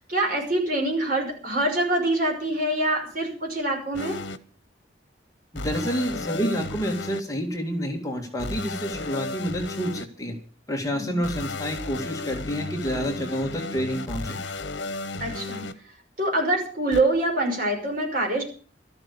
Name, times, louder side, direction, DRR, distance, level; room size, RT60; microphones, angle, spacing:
voice 1, 0.1-4.2 10.9-11.2 15.2-15.7 16.2-18.4, right 1 dB, 50° right, 1 dB, 5.7 m, -25 dB
sound 1, 3.9-4.4 5.6-7.2 8.4-10.0 11.2-15.7 16.9-17.0, left 2 dB, 80° left, 1.1 m, -34 dB
voice 2, 5.5-10.4 10.7-14.4, equal, 20° left, 3 dB, 2.1 m, -29 dB
13.0 x 11.5 x 6.8 m, 0.43 s
head